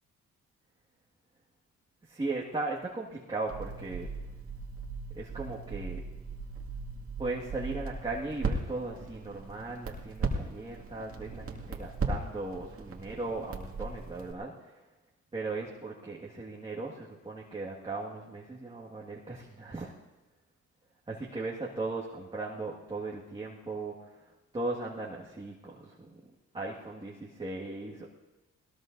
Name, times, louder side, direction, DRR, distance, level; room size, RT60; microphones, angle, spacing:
voice 1, 2.0-4.1 5.1-6.0 7.2-14.8 15.3-19.9 21.1-26.2 26.5-28.1, right 3 dB, 20° right, -4 dB, 1.8 m, -37 dB
Crackle, 3.5-14.3, right 3 dB, 50° right, 2.1 m, -38 dB
20.0 x 19.0 x 2.6 m, 1.1 s
cardioid pair, 90°, 30 cm